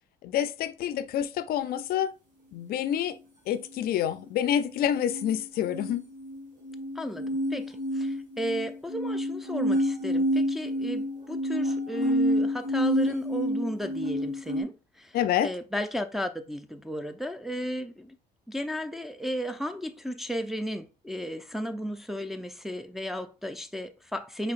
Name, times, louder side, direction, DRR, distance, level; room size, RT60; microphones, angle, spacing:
voice 1, 0.2-2.1 2.5-3.2 3.5-6.0 15.1-15.5, left 10 dB, 65° left, 0.4 m, -27 dB
sound 1, 5.0-14.6, equal, 50° right, 1.8 m, -28 dB
voice 2, 7.0-15.2 15.4-18.2 18.5-24.5, equal, ahead, 0.4 m, -34 dB
4.9 x 3.2 x 2.4 m
cardioid pair, 110°, 17 cm